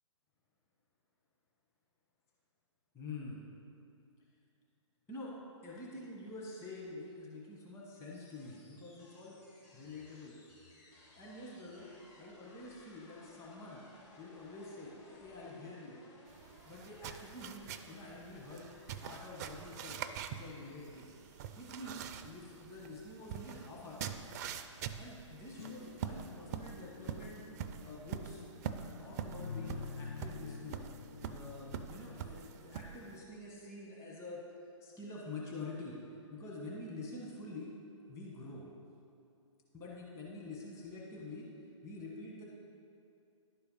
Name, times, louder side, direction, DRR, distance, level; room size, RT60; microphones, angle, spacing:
voice 1, 2.9-3.4 5.1-5.4 5.6-9.4 9.7-10.4 11.1-11.9 12.2-13.8 14.2-16.0 16.6-18.7 19.0-20.0 20.3-21.1 21.6-24.2 25.0-28.5 28.7-30.9 31.3-34.4 34.8-36.0 36.3-37.7 38.1-38.6 39.7-41.5 41.8-42.4, left 2 dB, 15° left, -4 dB, 1.4 m, -47 dB
sound 1, 8.1-28.0, left 2 dB, 35° left, 1.6 m, -63 dB
sound 2, 16.3-33.2, right 8 dB, 35° right, 0.4 m, -45 dB
sound 3, 25.6-32.5, left 5 dB, 75° left, 0.5 m, -48 dB
11.0 x 4.5 x 5.5 m, 2.5 s
hypercardioid pair, 140°, 16 cm